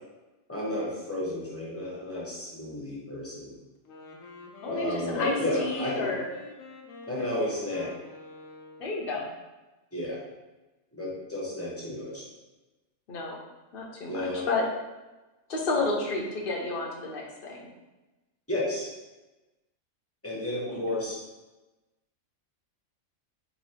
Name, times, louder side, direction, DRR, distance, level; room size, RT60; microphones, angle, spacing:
voice 1, 0.5-3.5 4.7-6.1 7.1-7.9 9.9-10.2 11.0-12.3 14.1-14.4 18.5-18.9 20.2-21.2, left 1 dB, 10° left, -5 dB, 0.9 m, -32 dB
Wind instrument woodwind instrument, 3.7-9.0, left 3 dB, 85° left, 1.0 m, -47 dB
voice 2, 4.6-6.2 8.8-9.3 13.1-13.4 13.7-14.6 15.5-17.6 20.7-20.8, left 3 dB, 50° left, -1 dB, 0.9 m, -31 dB
3.1 x 2.8 x 4.3 m, 1.1 s
omnidirectional pair, 1.3 m